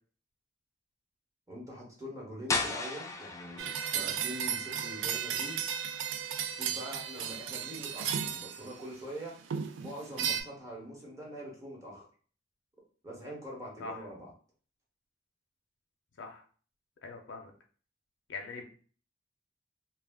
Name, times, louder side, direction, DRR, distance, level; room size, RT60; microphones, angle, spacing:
voice 1, 1.5-5.6 6.5-9.4 9.8-12.0 13.0-14.3, equal, 15° right, -3 dB, 0.9 m, -44 dB
sound 1, 2.5-8.1, left 3 dB, 15° left, 0.3 m, -39 dB
sound 2, 3.6-9.0 9.5-10.4, right 8 dB, 90° right, 0.3 m, -34 dB
voice 2, 17.0-17.5 18.3-18.7, left 3 dB, 85° left, 3 dB, 0.5 m, -42 dB
2.3 x 2.0 x 3.4 m, 0.42 s
head